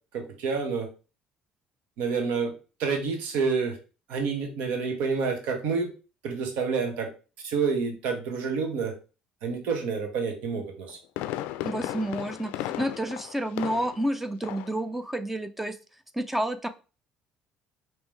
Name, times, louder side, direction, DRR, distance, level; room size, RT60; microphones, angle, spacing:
voice 1, 0.1-0.9 2.0-2.5 2.8-3.8 4.1-5.9 6.2-7.1 7.4-8.9 9.4-11.0, right 5 dB, 75° right, 4 dB, 1.4 m, -28 dB
Fireworks, 10.7-14.1 14.4-14.8 15.1-15.2, left 13 dB, 80° left, 0.3 m, -35 dB
voice 2, 11.6-15.8 16.1-16.7, right 1 dB, 10° right, 11 dB, 0.5 m, -30 dB
5.3 x 3.1 x 3.2 m, 0.33 s
supercardioid pair, 85°, 3 cm